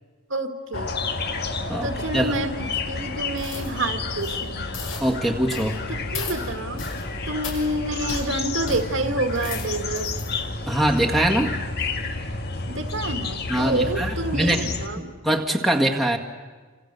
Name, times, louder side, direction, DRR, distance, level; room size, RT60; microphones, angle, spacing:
voice 1, 0.3-0.9 1.8-4.7 5.9-6.9 7.3-10.1 12.7-15.1, right 2 dB, 60° right, 6 dB, 1.8 m, -28 dB
sound 1, 0.7-14.9, left 3 dB, 50° left, 1.5 m, -30 dB
voice 2, 1.7-2.3 5.0-5.8 10.7-11.6 13.5-14.6 14.9-16.2, right 1 dB, ahead, 4 dB, 1.8 m, -23 dB
sound 2, 3.4-3.7 4.1-4.4 4.7-5.1 5.5-5.8 6.1-6.4 6.8-7.0 7.4-7.6 8.1-8.3 8.7-8.8 9.2-10.3 10.8-10.9, left 4 dB, 65° left, 6.1 m, -35 dB
29.5 x 27.0 x 6.8 m, 1.4 s
head